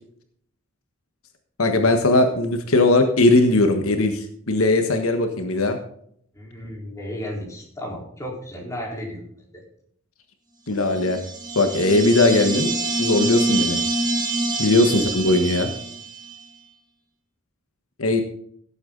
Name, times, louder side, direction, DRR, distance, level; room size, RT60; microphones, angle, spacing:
voice 1, 1.6-5.8 10.7-11.2 11.5-12.7 13.0-13.8 14.6-15.7 18.0-18.2, left 2 dB, 75° left, 5 dB, 1.4 m, -19 dB
voice 2, 6.3-9.2 9.5-9.6, equal, 15° left, -2 dB, 4.1 m, -34 dB
sound 1, 11.0-16.4, right 2 dB, 20° right, 2.2 m, -25 dB
17.0 x 8.3 x 3.9 m, 0.66 s
head